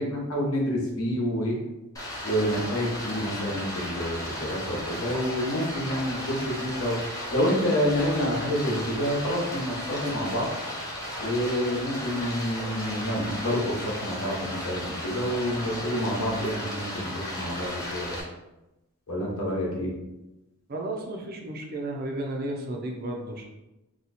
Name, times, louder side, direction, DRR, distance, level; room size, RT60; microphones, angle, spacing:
voice 1, 0.0-1.6 2.2-7.0 7.3-10.5 11.2-18.2 19.1-19.9, equal, 70° left, -2 dB, 1.0 m, -28 dB
Stream, 2.0-18.2, left 1 dB, 15° left, 0.6 m, -35 dB
voice 2, 20.7-23.5, right 1 dB, 45° right, 1 dB, 0.5 m, -33 dB
2.8 x 2.3 x 4.0 m, 0.97 s
head